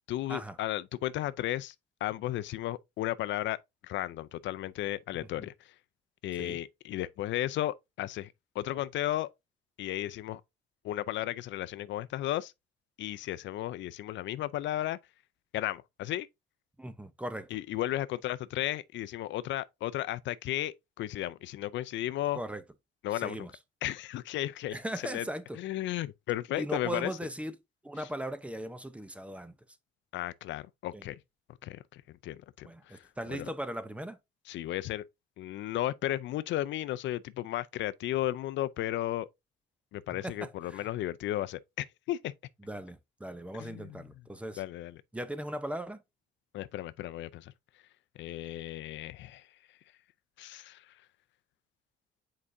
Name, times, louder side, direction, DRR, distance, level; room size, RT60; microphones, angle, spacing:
voice 1, 0.1-1.7 2.0-3.6 3.8-5.7 6.2-9.3 9.8-10.4 10.8-12.5 13.0-15.0 15.5-16.3 17.5-22.4 23.0-23.5 23.8-24.8 25.0-25.2 25.6-27.1 30.1-31.2 31.6-33.0 33.3-33.5 34.5-35.0 35.4-39.3 39.9-42.3 43.6-44.0 44.6-45.0 46.5-47.5 48.2-49.5 50.4-50.9, left 14 dB, 65° left, 0.4 m, -34 dB
voice 2, 16.8-17.6 22.3-22.6 23.1-23.5 24.7-25.6 26.6-27.5 27.8-29.6 30.9-31.0 32.6-34.2 40.1-40.9 42.6-44.6 45.1-46.0, right 1 dB, 5° right, 0.6 m, -38 dB
7.4 x 4.8 x 2.6 m
cardioid pair, 125°, 20 cm